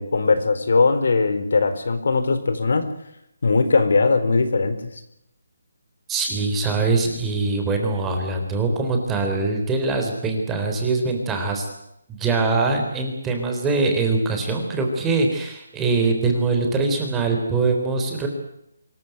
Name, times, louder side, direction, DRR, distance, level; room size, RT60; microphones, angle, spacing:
voice 1, 0.0-2.9 3.4-4.8, left 4 dB, 65° left, 10 dB, 4.2 m, -19 dB
voice 2, 6.1-11.7 12.1-18.3, right 3 dB, 10° right, 3 dB, 3.7 m, -23 dB
25.5 x 15.5 x 9.3 m, 0.79 s
hypercardioid pair, 170°, 0 cm